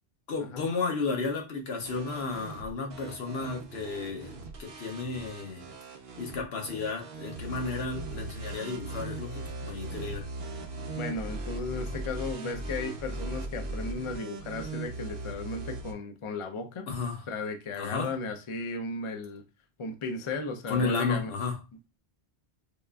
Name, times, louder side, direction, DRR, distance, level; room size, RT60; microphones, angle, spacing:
voice 1, 0.3-5.6 6.2-10.3 16.9-17.2 17.8-18.1 20.7-21.6, left 4 dB, 70° left, 1.0 m, -33 dB
sound 1, 1.8-15.9, right 2 dB, 60° right, 0.8 m, -39 dB
voice 2, 11.0-16.9 17.3-19.4 19.8-21.3, left 3 dB, 45° left, 0.4 m, -35 dB
5.0 x 2.4 x 2.2 m
omnidirectional pair, 1.1 m